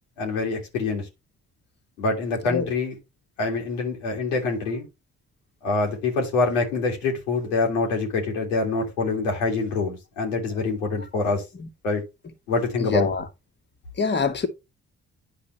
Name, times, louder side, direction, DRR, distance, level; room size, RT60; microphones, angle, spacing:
voice 1, 0.2-1.0 2.0-3.0 3.4-4.9 5.6-11.4 11.8-12.0 12.5-13.1, left 3 dB, 85° left, 2.1 m, -25 dB
voice 2, 12.9-13.2 14.0-14.5, left 5 dB, 30° left, 1.5 m, -24 dB
9.9 x 5.0 x 3.1 m
hypercardioid pair, 45°, 35 cm